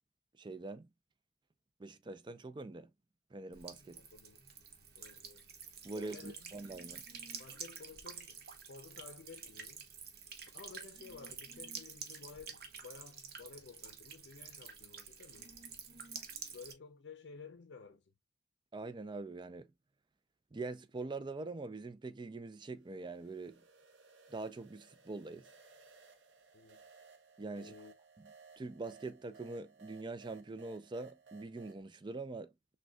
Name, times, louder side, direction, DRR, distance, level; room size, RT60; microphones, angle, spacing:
voice 1, 0.4-0.9 1.8-2.9 3.3-4.0 5.8-7.0 18.7-19.7 20.5-23.6 24.3-25.5 27.4-27.7 28.2-28.3 28.6-32.5, right 3 dB, 25° right, 0.4 m, -44 dB
Buzz / Water tap faucet / Trickle dribble, 3.5-16.7, right 6 dB, 60° right, 0.8 m, -49 dB
voice 2, 3.9-4.4 5.0-5.4 5.9-6.5 7.4-8.4 8.7-9.9 10.5-15.6 16.5-18.0 26.5-26.8 27.5-27.9, left 5 dB, 85° left, 0.5 m, -53 dB
sound 1, 22.7-31.8, right 4 dB, 90° right, 0.7 m, -60 dB
6.1 x 2.2 x 2.2 m
head